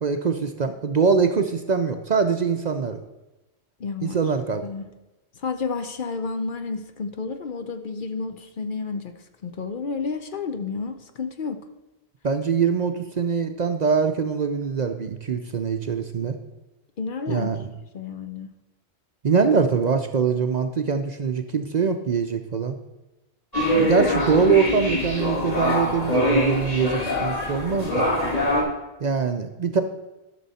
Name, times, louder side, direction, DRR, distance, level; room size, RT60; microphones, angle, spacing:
voice 1, 0.0-3.0 4.0-4.6 12.2-16.4 17.3-17.7 19.2-22.8 23.7-28.1 29.0-29.8, right 5 dB, 50° right, 7 dB, 0.6 m, -23 dB
voice 2, 3.8-4.2 4.6-4.9 5.4-9.1 9.4-11.6 17.0-17.5 17.9-18.5 23.7-23.9, left 4 dB, 55° left, 7 dB, 0.8 m, -31 dB
sound 1, 23.5-28.6, left 1 dB, 35° left, 2.3 m, -23 dB
12.5 x 6.2 x 4.2 m, 1.1 s
omnidirectional pair, 1.1 m